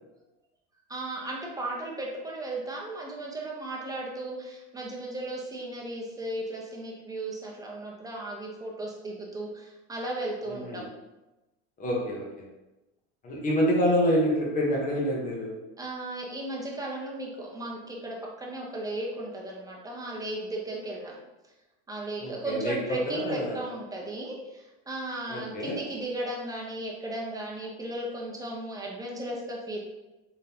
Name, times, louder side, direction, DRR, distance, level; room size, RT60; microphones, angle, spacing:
voice 1, 0.9-10.8 15.8-21.2 21.9-29.8, right 1 dB, 10° right, -2 dB, 0.8 m, -35 dB
voice 2, 10.5-10.8 11.8-12.3 13.2-15.5 22.2-22.8 23.1-23.6 25.3-25.8, equal, 25° left, -3 dB, 1.2 m, -27 dB
3.7 x 3.7 x 2.8 m, 1.0 s
supercardioid pair, 120°, 31 cm